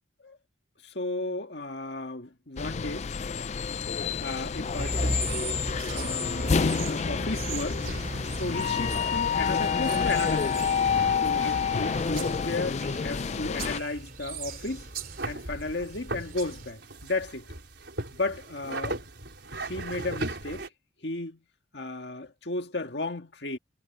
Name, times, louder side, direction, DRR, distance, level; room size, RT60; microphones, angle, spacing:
voice 1, 0.8-3.1 4.2-5.2 5.9-7.8 8.3-10.6 11.2-14.9 15.3-17.5 18.1-19.0 19.6-20.7 21.0-21.4 21.7-23.6, left 2 dB, 60° left, 1.9 m, -34 dB
sound 1, 2.6-13.8, left 6 dB, 35° left, 0.4 m, -28 dB
sound 2, 4.8-16.7, right 2 dB, 50° right, 3.3 m, -37 dB
sound 3, 7.8-20.7, right 2 dB, 65° right, 5.6 m, -40 dB
head